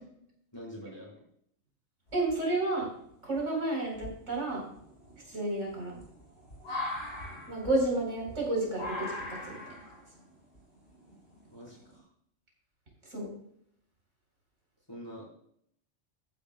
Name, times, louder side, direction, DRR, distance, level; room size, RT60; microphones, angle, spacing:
voice 1, 0.5-1.2 11.5-12.1 14.9-15.4, equal, 20° left, -5 dB, 4.9 m, -45 dB
sound 1, 2.1-2.7 3.3-3.4 3.9-12.0, left 2 dB, 55° left, 4.1 m, -41 dB
voice 2, 2.1-2.9 3.2-4.6 5.3-5.9 7.5-9.6 13.1-13.3, right 2 dB, 70° right, -2 dB, 4.7 m, -31 dB
14.0 x 9.9 x 2.3 m, 0.69 s
omnidirectional pair, 1.3 m